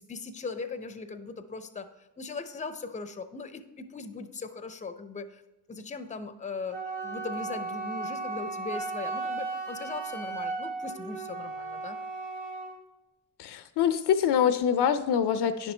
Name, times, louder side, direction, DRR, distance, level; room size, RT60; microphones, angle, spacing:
voice 1, 0.0-5.4 5.7-12.0, left 4 dB, 15° left, 11 dB, 0.5 m, -39 dB
Wind instrument woodwind instrument, 6.7-12.8, right 3 dB, 80° right, 2.1 m, -35 dB
voice 2, 13.4-15.7, left 8 dB, 65° left, 12 dB, 0.5 m, -25 dB
9.5 x 6.0 x 3.2 m, 1.0 s
cardioid pair, 65°, 43 cm